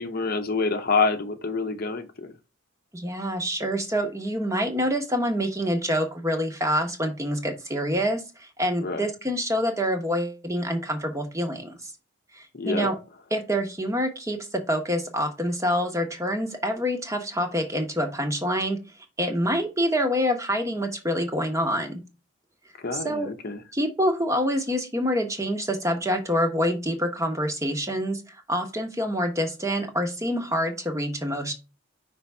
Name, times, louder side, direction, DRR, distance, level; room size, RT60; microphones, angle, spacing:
voice 1, 0.0-2.3 8.8-9.1 12.5-12.9 22.8-23.6, left 4 dB, 45° left, 0.7 m, -27 dB
voice 2, 2.9-11.9 12.3-13.0 13.3-18.8 19.2-22.0 22.9-23.3 23.7-31.5, equal, 15° right, 1.0 m, -26 dB
5.5 x 3.4 x 5.4 m
head